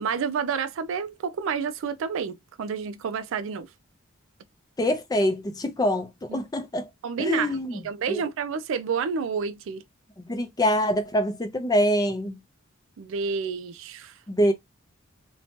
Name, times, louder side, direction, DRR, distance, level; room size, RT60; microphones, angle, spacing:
voice 1, 0.0-3.7 6.3-6.4 7.0-9.8 13.0-14.1, right 6 dB, 70° right, 0.4 m, -29 dB
voice 2, 4.8-6.9 7.2-7.8 8.1-8.2 10.2-12.4 14.3-14.5, equal, 20° left, 0.5 m, -25 dB
2.8 x 2.2 x 2.8 m
head